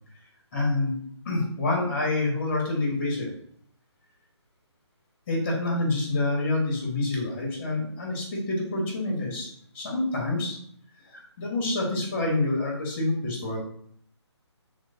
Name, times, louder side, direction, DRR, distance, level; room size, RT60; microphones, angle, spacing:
voice 1, 0.5-0.9 1.2-3.3 5.3-10.6 11.1-13.6, left 2 dB, 30° left, -3 dB, 1.2 m, -27 dB
3.2 x 3.0 x 2.6 m, 0.63 s
figure-of-eight pair, 155°, 15 cm